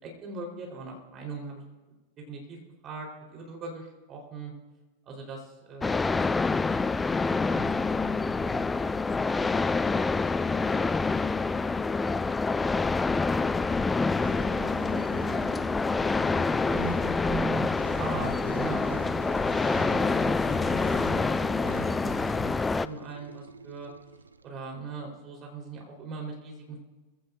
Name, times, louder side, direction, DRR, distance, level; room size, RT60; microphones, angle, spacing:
voice 1, 0.0-1.6 2.2-2.6 2.8-4.5 5.1-6.0 6.3-9.0 9.4-9.5 16.7-22.5 22.8-23.9 24.4-26.8, right 3 dB, 30° right, 1 dB, 4.0 m, -40 dB
sound 1, 5.8-22.9, left 4 dB, 10° left, 0.3 m, -27 dB
voice 2, 10.5-10.6, right 2 dB, 15° right, -1 dB, 2.0 m, -54 dB
sound 2, 14.1-24.5, right 3 dB, 80° right, 0.5 m, -45 dB
22.0 x 16.0 x 2.6 m, 1.2 s
figure-of-eight pair, 90°, 0 cm